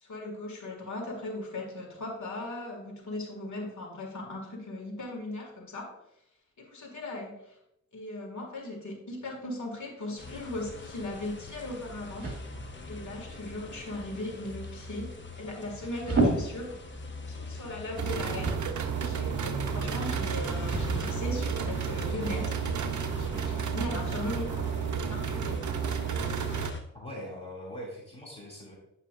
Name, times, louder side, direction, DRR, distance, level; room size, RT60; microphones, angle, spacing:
voice 1, 0.0-5.9 6.6-7.6 7.9-12.3 12.9-16.8 17.3-18.6 18.9-22.6 23.1-24.7 25.1-25.6, left 2 dB, 70° left, 0 dB, 2.1 m, -38 dB
sound 1, 10.2-26.8, left 2 dB, 40° left, 1.1 m, -42 dB
sound 2, 12.0-24.3, right 2 dB, 55° right, 2.0 m, -37 dB
sound 3, 18.0-26.7, right 7 dB, 80° right, 0.6 m, -32 dB
voice 2, 26.9-28.7, equal, 20° left, -5 dB, 2.5 m, -41 dB
9.4 x 5.7 x 2.5 m, 0.80 s
wide cardioid pair, 85°, 30 cm